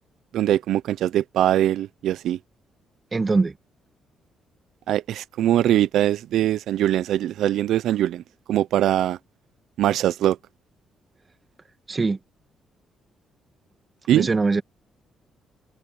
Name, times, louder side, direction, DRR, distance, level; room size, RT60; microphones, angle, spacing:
voice 1, 0.3-2.4 4.9-8.2 8.5-9.2 9.8-10.4 14.1-14.3, right 12 dB, 80° right, 0.5 m, -22 dB
voice 2, 3.1-3.5 11.9-12.2 14.1-14.6, right 3 dB, 30° right, 1.8 m, -22 dB
cardioid pair, 90°, 0 cm